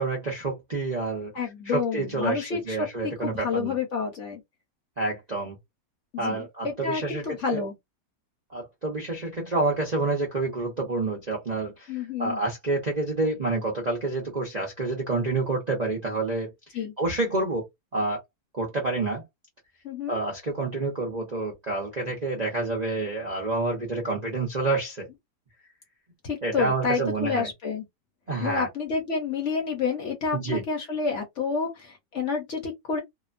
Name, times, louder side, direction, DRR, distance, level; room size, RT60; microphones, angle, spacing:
voice 1, 0.0-1.3 1.6-3.8 5.0-5.6 6.2-7.6 8.5-16.5 17.0-18.2 18.5-19.2 20.1-25.1 26.4-27.5 28.3-28.7 30.3-30.6, right 2 dB, 40° right, 0.6 m, -28 dB
voice 2, 1.3-4.4 6.1-7.7 11.9-12.4 16.7-16.9 19.8-20.2 26.2-27.8 28.4-33.0, left 5 dB, 55° left, 0.9 m, -29 dB
2.9 x 2.2 x 2.5 m
omnidirectional pair, 1.8 m